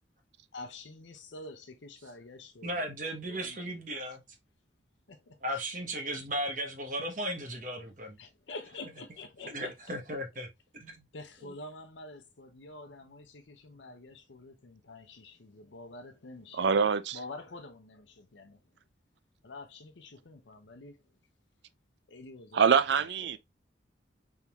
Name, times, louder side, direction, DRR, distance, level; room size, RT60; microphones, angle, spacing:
voice 1, 0.5-2.9 3.2-3.7 5.1-5.6 8.2-9.7 11.1-16.7 17.1-18.6 19.4-21.0 22.1-23.4, left 2 dB, 85° left, 0.7 m, -47 dB
voice 2, 2.6-4.2 5.4-8.2 9.5-10.5 10.7-11.0, right 1 dB, 45° right, 1.0 m, -36 dB
voice 3, 16.6-17.2 22.5-23.4, right 6 dB, 75° right, 0.4 m, -24 dB
3.6 x 3.5 x 2.9 m
head